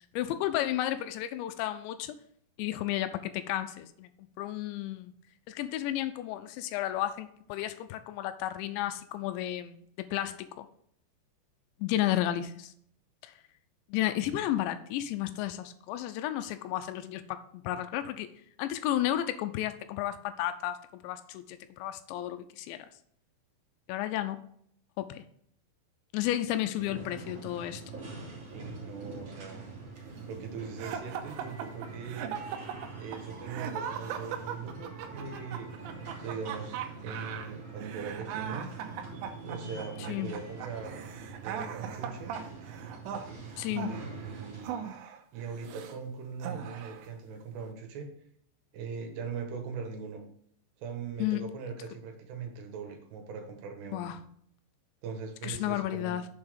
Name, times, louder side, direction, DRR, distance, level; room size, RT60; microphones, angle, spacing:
voice 1, 0.1-2.2 2.6-4.1 4.4-5.1 5.5-10.7 11.8-12.7 13.2-13.3 13.9-18.3 18.6-22.9 23.9-24.4 25.0-25.3 26.1-27.8 40.1-40.3 43.6-44.0 51.2-51.5 53.9-54.2 55.4-56.3, left 13 dB, 85° left, 10 dB, 2.8 m, -32 dB
sound 1, 26.8-44.6, right 4 dB, 35° right, 3.5 m, -44 dB
voice 2, 28.5-29.7 30.3-32.3 32.9-35.7 36.2-38.7 39.4-41.0 41.4-42.3 43.6-44.9 45.3-48.1 48.7-50.2 50.8-54.1 55.0-56.2, right 5 dB, 70° right, 3 dB, 3.4 m, -40 dB
sound 2, 30.8-46.0 46.4-47.1, right 8 dB, 90° right, 3.0 m, -39 dB
7.2 x 5.7 x 5.1 m, 0.65 s
omnidirectional pair, 5.2 m